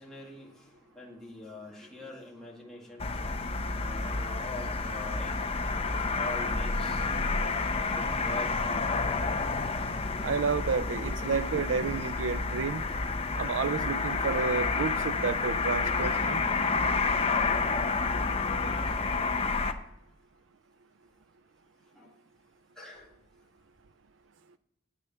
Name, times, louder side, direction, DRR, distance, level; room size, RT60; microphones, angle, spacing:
voice 1, 0.0-3.2 3.7-5.4 6.1-7.0 7.9-9.1 13.1-13.2 22.0-22.1 22.8-23.1, left 1 dB, 5° left, 2.2 m, -43 dB
sound 1, 3.0-19.7, left 4 dB, 30° left, 0.8 m, -29 dB
voice 2, 10.2-12.8 13.4-16.4, right 5 dB, 85° right, 0.5 m, -30 dB
8.9 x 6.5 x 7.3 m
head